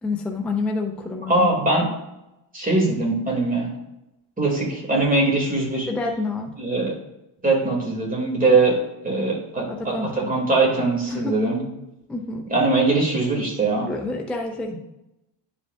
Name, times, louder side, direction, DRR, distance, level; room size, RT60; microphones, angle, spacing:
voice 1, 0.0-1.5 5.9-6.6 8.5-8.6 9.7-10.5 11.0-11.4 12.1-12.5 13.8-14.7, left 3 dB, 5° left, 1 dB, 0.5 m, -28 dB
voice 2, 1.3-1.9 2.5-3.7 4.4-5.9 6.6-6.9 7.4-8.8 9.0-11.6 12.5-13.9, right 3 dB, 15° right, -2 dB, 2.2 m, -21 dB
9.8 x 5.1 x 2.3 m, 0.91 s
cardioid pair, 135°, 48 cm